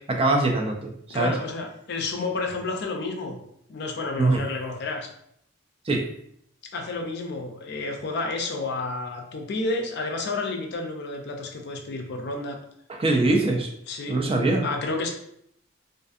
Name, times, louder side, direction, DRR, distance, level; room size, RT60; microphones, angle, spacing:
voice 1, 0.1-1.4 4.2-4.4 5.9-6.0 12.9-13.7 14.1-14.6, right 2 dB, 30° right, 1 dB, 0.4 m, -22 dB
voice 2, 1.1-3.4 3.7-5.1 6.7-12.6 13.9-14.2 14.6-15.1, left 3 dB, 55° left, 3 dB, 0.4 m, -30 dB
2.5 x 2.5 x 2.4 m, 0.71 s
head